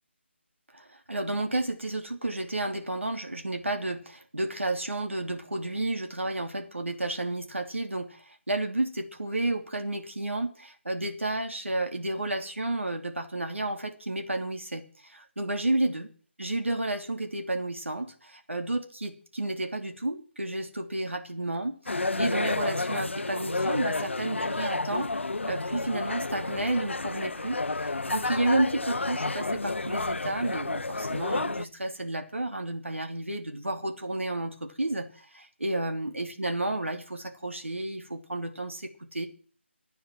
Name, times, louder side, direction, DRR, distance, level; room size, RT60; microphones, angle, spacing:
voice 1, 0.7-16.1 16.4-25.2 25.5-39.3, right 2 dB, 80° right, 5 dB, 3.0 m, -31 dB
sound 1, 21.9-31.7, left 3 dB, 70° left, 0.8 m, -31 dB
26.0 x 9.5 x 4.6 m, 0.43 s
figure-of-eight pair, 155°, 7 cm